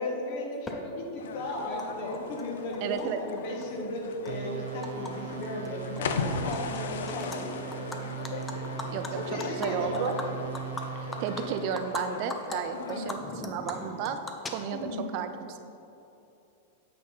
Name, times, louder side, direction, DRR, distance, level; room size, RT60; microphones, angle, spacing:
voice 1, 0.0-8.1 9.1-10.0 12.9-13.2 14.7-15.0, left 1 dB, 50° left, 0 dB, 1.4 m, -35 dB
Animal, 0.7-0.8 1.8-1.9 2.1-3.0 3.4-5.1 5.4-5.7 6.0-6.8 7.1-7.4 7.7-12.0 12.3-12.6 12.9-15.0, left 3 dB, 10° left, 0.5 m, -39 dB
sound 1, 1.2-13.2, left 6 dB, 80° left, 0.5 m, -39 dB
voice 2, 2.8-3.2 8.9-10.2 11.0-14.2 14.5-15.6, right 8 dB, 45° right, 9 dB, 0.4 m, -33 dB
sound 2, 4.3-11.8, right 7 dB, 80° right, 0.8 m, -39 dB
8.7 x 4.1 x 5.5 m, 2.7 s
supercardioid pair, 155°, 0 cm